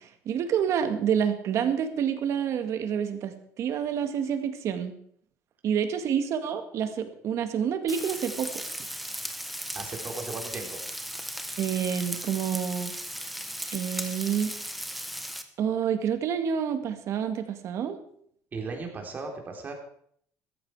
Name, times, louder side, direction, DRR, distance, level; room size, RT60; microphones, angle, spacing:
voice 1, 0.0-4.9 5.6-8.6 11.6-12.9 13.7-14.5 15.6-18.0, right 8 dB, 50° right, 8 dB, 1.9 m, -28 dB
Frying (food), 7.9-15.4, equal, ahead, 1.3 m, -36 dB
voice 2, 9.7-10.8 18.5-19.7, right 4 dB, 30° right, 2 dB, 3.6 m, -36 dB
15.5 x 14.0 x 4.8 m, 0.64 s
cardioid pair, 140°, 6 cm